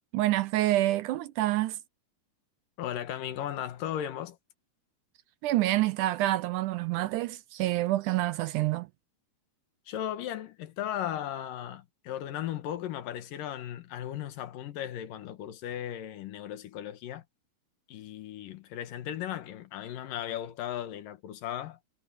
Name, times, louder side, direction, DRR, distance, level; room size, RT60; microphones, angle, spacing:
voice 1, 0.1-1.8 5.4-8.9, right 16 dB, 80° right, 1.9 m, -27 dB
voice 2, 2.8-4.4 9.9-17.2 17.9-21.8, left 11 dB, 80° left, 3.0 m, -36 dB
omnidirectional pair, 3.9 m